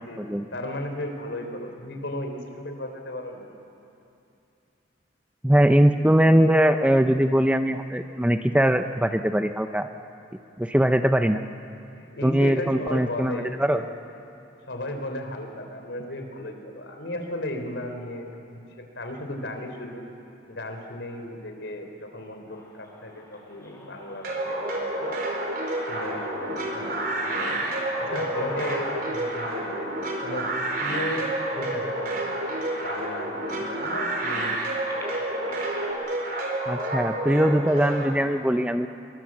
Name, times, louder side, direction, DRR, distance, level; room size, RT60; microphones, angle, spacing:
voice 1, 0.5-3.4 12.0-13.8 14.7-18.7 19.0-20.0 20.5-25.2 25.9-26.9 27.2-27.7 28.0-29.9 30.2-30.5 30.8-31.3 31.5-34.6, left 1 dB, 75° left, 4 dB, 3.5 m, -35 dB
voice 2, 5.4-9.9 10.6-11.4 12.2-13.8 36.7-38.9, equal, 5° right, 8 dB, 0.5 m, -21 dB
sound 1, 22.5-32.4 33.1-33.2 33.5-35.9, left 1 dB, 15° left, 4.1 m, -44 dB
sound 2, 24.2-38.1, right 1 dB, 50° right, 4.1 m, -29 dB
26.0 x 23.0 x 7.6 m, 2.7 s
head